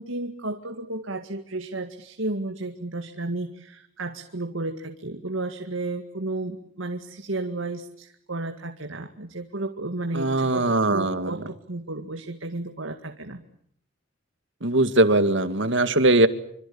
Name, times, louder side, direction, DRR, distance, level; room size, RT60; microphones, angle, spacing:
voice 1, 0.0-13.4, right 2 dB, 80° right, 6 dB, 2.1 m, -33 dB
voice 2, 10.1-11.4 14.6-16.3, right 2 dB, 65° right, 11 dB, 2.2 m, -20 dB
26.5 x 25.5 x 8.7 m, 0.68 s
head